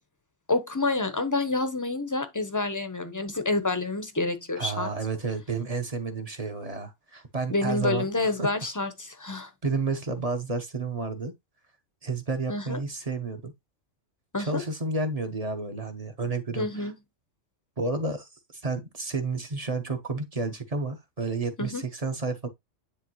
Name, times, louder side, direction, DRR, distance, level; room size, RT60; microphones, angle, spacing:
voice 1, 0.5-4.9 7.5-9.5 12.5-12.8 14.3-14.6 16.6-16.9 21.6-21.8, left 2 dB, 15° left, 0.8 m, -28 dB
voice 2, 4.6-8.1 8.4-8.5 9.6-11.3 12.0-13.5 14.4-16.9 17.8-22.5, right 3 dB, 30° right, 1.0 m, -31 dB
9.8 x 3.4 x 3.0 m
omnidirectional pair, 1.3 m